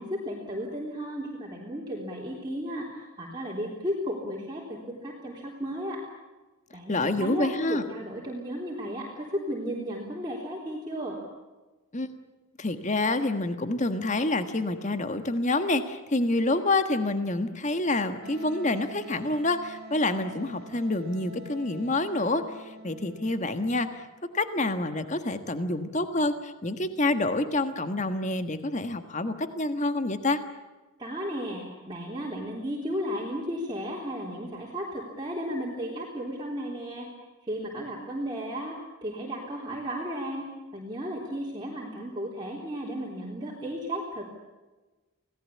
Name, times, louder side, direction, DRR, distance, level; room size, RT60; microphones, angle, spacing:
voice 1, 0.0-6.0 6.7-11.2 31.0-37.1 37.4-38.8 39.0-40.5 40.7-44.3, equal, 20° right, -3 dB, 3.6 m, -34 dB
voice 2, 6.9-7.8 11.9-12.1 12.6-24.0 24.3-30.4, left 2 dB, 35° left, 9 dB, 1.5 m, -27 dB
Wind instrument woodwind instrument, 18.2-23.8, right 2 dB, 45° right, 1.9 m, -45 dB
27.5 x 18.5 x 8.5 m, 1.2 s
head